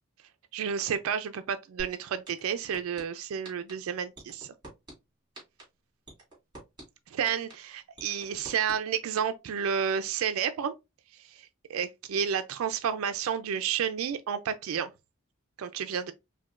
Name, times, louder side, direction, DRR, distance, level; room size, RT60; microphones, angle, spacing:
voice 1, 0.5-4.5 7.1-10.7 11.4-14.9 15.6-16.1, right 7 dB, 80° right, 0.3 m, -31 dB
sound 1, 1.8-1.9 2.3-3.0 3.4-3.7 4.2-4.9 5.3-5.6 6.1-6.8 7.3-7.5 8.0-8.7 9.2-9.3, right 1 dB, 20° right, 2.3 m, -43 dB
5.0 x 2.2 x 2.3 m
head